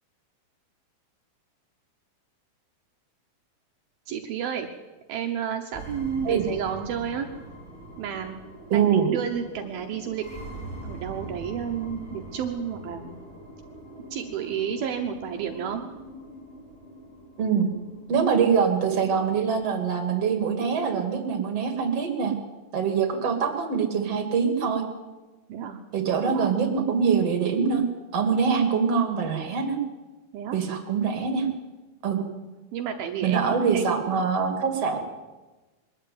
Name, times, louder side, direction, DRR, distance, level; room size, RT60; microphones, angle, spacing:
voice 1, 4.1-4.7 5.1-7.3 8.0-8.4 8.7-10.3 10.8-13.2 14.1-15.8 25.5-25.8 26.3-26.6 30.3-30.6 32.3-34.0, right 8 dB, 70° right, 5 dB, 2.7 m, -31 dB
sound 1, 5.7-19.7, right 2 dB, ahead, 4.6 m, -43 dB
voice 2, 8.7-9.1 17.4-17.7 18.1-22.3 22.7-24.8 25.9-27.8 28.1-29.8 30.5-31.5 32.0-32.2 33.2-35.0, right 6 dB, 40° right, 6 dB, 3.0 m, -24 dB
22.5 x 13.5 x 9.4 m, 1.2 s
omnidirectional pair, 4.7 m